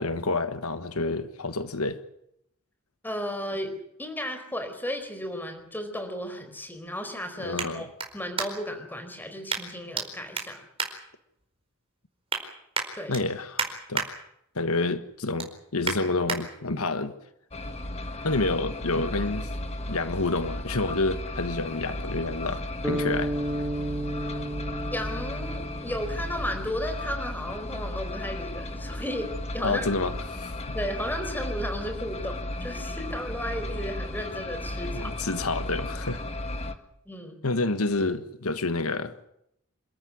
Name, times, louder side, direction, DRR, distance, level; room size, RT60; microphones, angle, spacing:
voice 1, 0.0-2.0 7.4-7.9 13.1-14.1 14.5-17.1 18.2-19.5 19.9-23.3 29.6-30.8 34.9-36.2 37.4-39.3, left 3 dB, 80° left, 10 dB, 1.5 m, -29 dB
voice 2, 3.0-7.9 8.1-10.6 12.9-13.2 24.9-29.9 30.7-35.1 37.1-37.4, equal, 10° left, 6 dB, 4.5 m, -34 dB
sound 1, 4.7-8.8 9.5-10.1 10.3-11.6 12.0-12.4 12.7-14.1 14.5-14.8 15.1-16.4 16.9-17.0, right 5 dB, 25° right, 4.7 m, -33 dB
sound 2, 17.5-36.7, left 1 dB, 30° left, 1.7 m, -35 dB
sound 3, 22.8-27.1, right 1 dB, 10° right, 3.7 m, -33 dB
28.0 x 14.0 x 9.7 m, 0.76 s
head